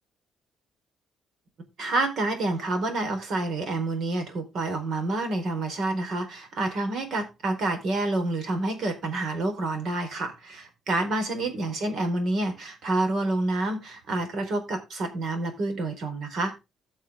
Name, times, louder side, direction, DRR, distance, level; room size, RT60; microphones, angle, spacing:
voice 1, 1.8-16.6, right 2 dB, 60° right, 6 dB, 4.1 m, -28 dB
15.0 x 6.7 x 3.6 m, 0.25 s
cardioid pair, 135°, 0 cm